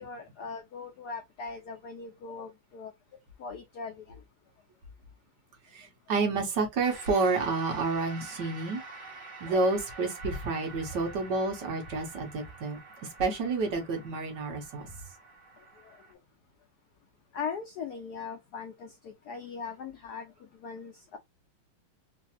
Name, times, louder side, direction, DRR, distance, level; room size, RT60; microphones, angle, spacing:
voice 1, 0.0-2.9 3.4-4.2 9.4-9.6 17.3-21.2, left 5 dB, 80° left, 0.8 m, -40 dB
voice 2, 5.7-8.8 9.4-15.0, right 3 dB, 60° right, 1.5 m, -30 dB
sound 1, 6.8-16.1, right 3 dB, 40° right, 1.9 m, -47 dB
3.8 x 2.5 x 2.8 m
omnidirectional pair, 2.4 m